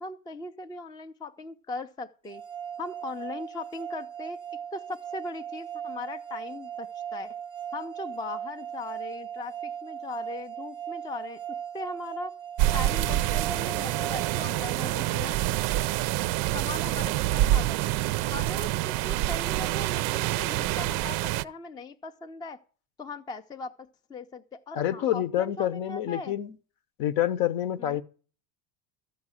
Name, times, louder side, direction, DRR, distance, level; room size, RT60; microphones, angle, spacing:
voice 1, 0.0-2.4 2.8-4.4 4.7-7.4 7.7-11.4 11.7-12.3 12.7-15.4 16.5-17.8 18.3-22.6 23.0-23.7 24.1-26.3 27.8-28.0, left 3 dB, 10° left, 0.4 m, -39 dB
sound 1, 2.3-15.2, right 9 dB, 15° right, 0.8 m, -38 dB
sound 2, 12.6-21.4, right 15 dB, 50° right, 0.5 m, -27 dB
voice 2, 24.7-26.6 27.0-28.0, left 12 dB, 60° left, 1.0 m, -27 dB
13.5 x 4.7 x 8.9 m
supercardioid pair, 130°, 42 cm